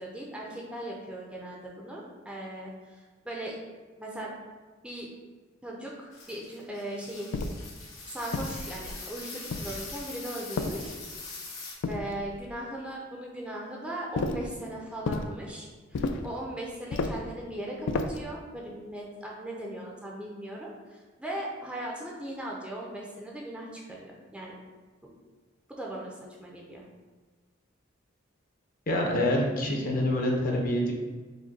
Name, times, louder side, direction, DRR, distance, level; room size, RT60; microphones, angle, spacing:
voice 1, 0.0-3.6 4.0-4.4 4.8-5.1 5.6-7.4 8.1-10.9 11.2-11.6 11.9-24.6 25.0-25.1 25.7-26.9, right 1 dB, 5° right, -3 dB, 0.5 m, -38 dB
sound 1, 6.1-11.7, left 3 dB, 90° left, 1.2 m, -43 dB
sound 2, 7.3-7.7 8.3-9.0 9.5-10.0 10.6-11.2 11.8-12.5 14.1-14.5 15.0-15.3 15.9-16.3 16.9-17.3 17.9-18.3, left 3 dB, 60° left, 0.3 m, -32 dB
voice 2, 28.9-30.9, left 1 dB, 45° left, 0 dB, 0.7 m, -26 dB
4.9 x 2.2 x 4.0 m, 1.4 s
head